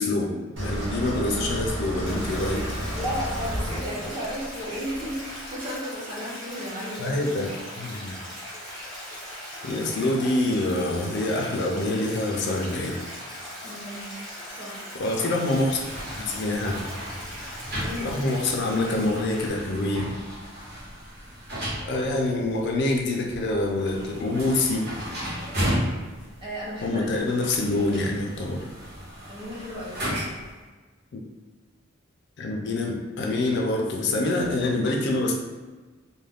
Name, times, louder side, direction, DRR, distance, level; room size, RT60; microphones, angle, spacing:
voice 1, 0.0-2.6 7.0-7.5 7.8-8.2 9.6-13.0 14.9-15.8 16.2-16.7 18.0-20.0 21.8-24.9 26.8-28.7 32.4-35.3, left 2 dB, 55° left, 0 dB, 0.4 m, -26 dB
sound 1, 0.6-5.5, right 1 dB, 70° right, 0.7 m, -32 dB
Stream, 2.1-19.5, left 1 dB, ahead, 0.8 m, -39 dB
voice 2, 2.9-7.2 13.6-14.1 14.5-14.8 17.8-18.1 26.4-27.1 27.4-27.5 29.3-30.0, equal, 25° right, -6 dB, 0.8 m, -34 dB
sound 2, 15.5-30.6, equal, 50° right, 1.0 m, -35 dB
2.3 x 2.2 x 3.3 m, 1.3 s
head